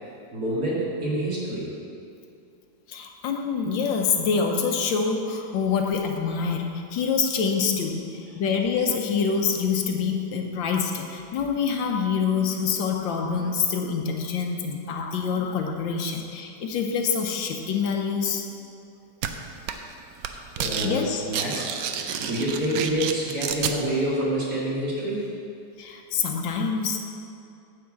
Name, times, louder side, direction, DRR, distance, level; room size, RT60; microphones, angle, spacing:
voice 1, 0.3-1.7 20.6-21.7 22.2-25.3, right 1 dB, 50° right, -7 dB, 2.7 m, -27 dB
voice 2, 2.9-18.4 20.7-21.2 21.6-21.7 25.8-27.0, left 6 dB, 75° left, 3 dB, 1.5 m, -26 dB
sound 1, 19.2-19.3 19.7-19.9 20.2-20.9 21.2-23.8, right 8 dB, 75° right, 0.8 m, -29 dB
9.6 x 4.8 x 7.5 m, 2.5 s
omnidirectional pair, 2.1 m